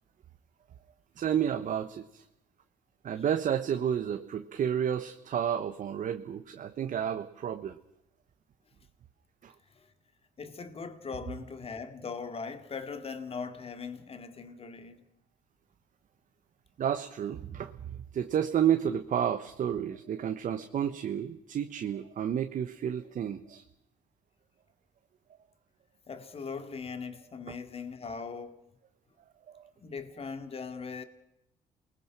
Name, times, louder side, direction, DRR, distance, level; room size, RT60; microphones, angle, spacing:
voice 1, 1.2-2.2 3.0-7.8 9.4-9.5 16.8-23.6 29.5-29.6, right 9 dB, 60° right, 1.1 m, -31 dB
voice 2, 10.4-15.0 26.1-28.7 29.8-31.0, left 5 dB, 40° left, 2.3 m, -40 dB
28.5 x 20.5 x 6.0 m
cardioid pair, 80°, 16 cm